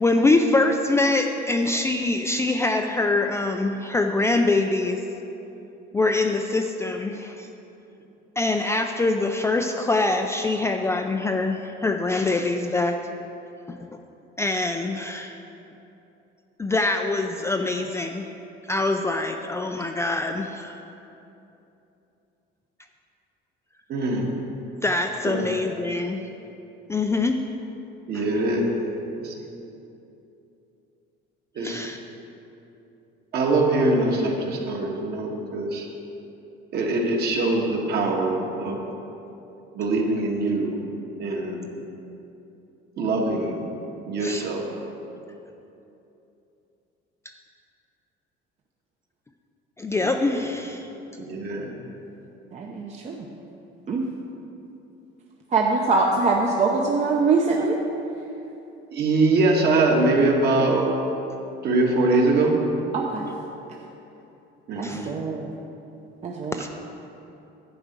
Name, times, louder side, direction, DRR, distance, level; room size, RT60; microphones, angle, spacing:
voice 1, 0.0-5.0 5.9-7.5 8.4-13.0 13.7-13.8 14.4-15.3 16.6-18.3 18.7-20.8 24.8-26.2 26.9-27.4 28.1-28.2 31.6-32.0 44.2-44.5 49.8-50.9 64.8-65.1 66.5-66.7, left 2 dB, 15° left, 4 dB, 0.3 m, -24 dB
voice 2, 23.9-24.3 25.3-25.5 28.1-28.7 29.2-29.4 31.6-31.8 33.3-35.9 36.7-38.8 39.7-40.8 41.2-41.6 43.0-43.6 44.1-44.6 50.4-50.5 51.2-51.7 58.9-60.8 61.6-62.5 64.7-65.1, right 2 dB, 50° right, 0 dB, 1.6 m, -23 dB
voice 3, 52.5-53.2 53.9-54.0 55.5-57.8 62.9-63.3 64.8-65.5 66.2-66.6, right 3 dB, 35° right, -1 dB, 0.7 m, -23 dB
11.0 x 4.9 x 8.0 m, 2.9 s
cardioid pair, 150°, 21 cm